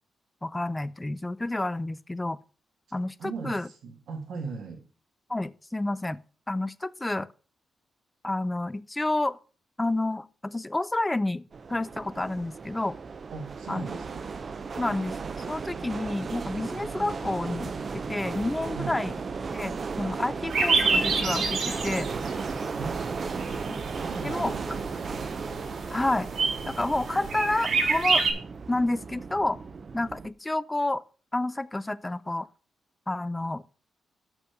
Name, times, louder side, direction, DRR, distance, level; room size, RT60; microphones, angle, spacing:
voice 1, 0.4-2.4 2.9-3.7 5.3-7.3 8.2-9.4 9.8-12.9 13.7-13.9 14.8-15.2 15.5-19.1 19.5-22.1 23.7-23.8 24.2-24.5 25.9-26.3 26.7-28.2 28.7-29.6 29.9-31.0 31.3-32.5 33.1-33.6, left 2 dB, 15° left, 0.4 m, -29 dB
voice 2, 3.2-4.8 13.3-14.3 18.7-19.0 22.7-23.7 24.0-25.3, right 5 dB, 85° right, 2.1 m, -39 dB
sound 1, 11.5-30.3, right 5 dB, 40° right, 0.5 m, -35 dB
sound 2, 20.5-28.3, right 4 dB, 65° right, 2.2 m, -29 dB
6.7 x 6.0 x 5.7 m
cardioid pair, 120°, 0 cm